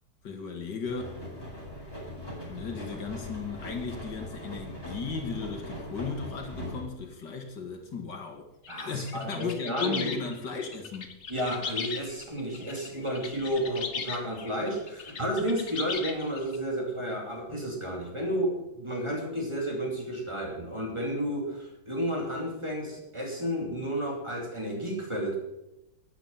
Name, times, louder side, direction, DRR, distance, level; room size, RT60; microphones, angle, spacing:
voice 1, 0.2-1.2 2.5-8.5 8.8-11.1, left 5 dB, 70° left, 4 dB, 2.3 m, -36 dB
sound 1, 0.9-6.8, left 1 dB, 10° left, 4.6 m, -40 dB
sound 2, 8.6-16.6, left 5 dB, 45° left, 1.2 m, -38 dB
voice 2, 8.7-10.1 11.3-25.4, equal, 15° right, 0 dB, 3.1 m, -32 dB
12.0 x 9.6 x 7.3 m, 0.90 s
omnidirectional pair, 1.9 m